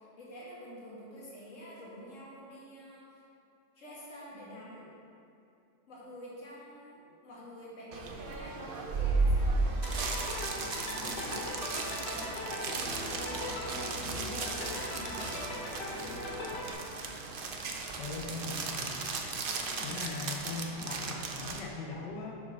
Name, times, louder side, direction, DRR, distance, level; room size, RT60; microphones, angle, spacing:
voice 1, 0.0-3.1 3.8-4.9 5.9-10.5 11.0-15.6, equal, 45° left, -6 dB, 2.2 m, -48 dB
sound 1, 7.9-21.6, right 3 dB, 70° right, 0.5 m, -35 dB
sound 2, 9.8-16.7, left 1 dB, 70° left, 1.9 m, -39 dB
voice 2, 18.0-19.0 19.8-22.3, left 3 dB, 90° left, 0 dB, 1.5 m, -40 dB
7.1 x 6.5 x 5.3 m, 2.6 s
omnidirectional pair, 1.9 m